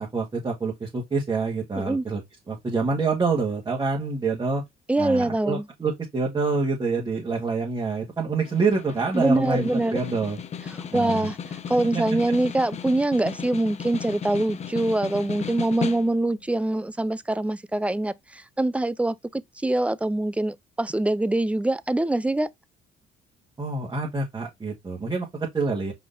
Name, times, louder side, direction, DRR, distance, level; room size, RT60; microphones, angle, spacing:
voice 1, 0.0-2.2 2.5-4.6 5.0-10.4 10.9-11.3 11.9-12.0 23.6-25.9, right 4 dB, 25° right, 1.7 m, -26 dB
voice 2, 4.9-5.6 9.1-10.0 10.7-11.4 11.7-22.5, right 2 dB, 5° right, 0.4 m, -24 dB
Snare drum, 8.4-16.4, left 7 dB, 40° left, 0.7 m, -35 dB
5.0 x 4.0 x 2.5 m
cardioid pair, 110°, 17 cm